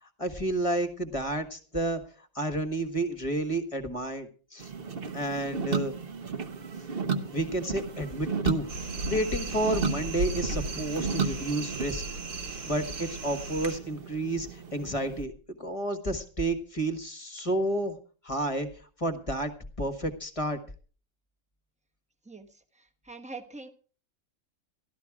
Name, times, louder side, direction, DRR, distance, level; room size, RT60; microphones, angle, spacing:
voice 1, 0.0-4.7 5.1-5.9 7.3-8.7 9.1-12.0 12.3-15.3 15.6-18.0 18.2-19.5 19.8-20.6, right 1 dB, 20° left, 8 dB, 1.5 m, -31 dB
sound 1, 4.6-15.2, right 5 dB, 40° right, 1.1 m, -35 dB
sound 2, 8.7-13.8, right 2 dB, 80° right, 2.8 m, -36 dB
voice 2, 22.2-23.7, right 3 dB, 5° right, 8 dB, 1.0 m, -44 dB
13.5 x 12.5 x 4.8 m, 0.39 s
omnidirectional pair, 1.6 m